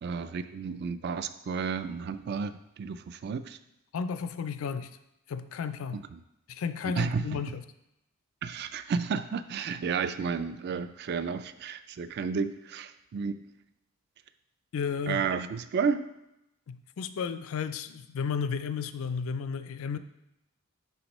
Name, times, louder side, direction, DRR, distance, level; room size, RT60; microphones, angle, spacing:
voice 1, 0.0-3.6 5.9-6.2 6.8-7.5 8.4-13.4 15.1-16.1, right 5 dB, 50° right, 12 dB, 0.3 m, -32 dB
voice 2, 3.9-5.0 5.3-6.0 6.5-7.6 14.7-15.2 16.7-20.0, left 6 dB, 75° left, 12 dB, 0.4 m, -33 dB
10.0 x 3.5 x 3.0 m, 0.88 s
head